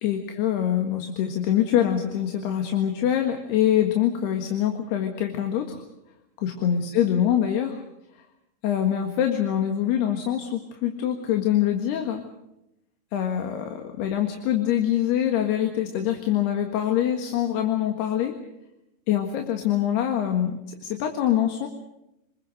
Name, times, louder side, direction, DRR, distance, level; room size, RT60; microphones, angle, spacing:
voice 1, 0.0-5.8 6.4-7.8 8.6-12.2 13.1-18.3 19.1-21.7, left 10 dB, 85° left, 5 dB, 3.8 m, -24 dB
28.0 x 21.0 x 6.6 m, 0.87 s
omnidirectional pair, 4.5 m